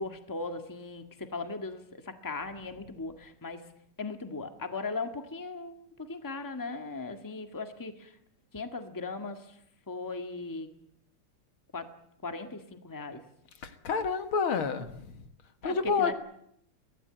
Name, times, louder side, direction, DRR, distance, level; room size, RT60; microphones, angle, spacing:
voice 1, 0.0-3.6 4.0-8.1 8.5-9.4 9.9-10.7 11.7-11.9 12.2-13.2 15.6-16.1, left 3 dB, 10° left, 7 dB, 1.5 m, -38 dB
voice 2, 13.6-15.2 15.6-16.1, left 5 dB, 70° left, 8 dB, 2.4 m, -29 dB
24.0 x 17.0 x 9.0 m, 0.72 s
omnidirectional pair, 2.4 m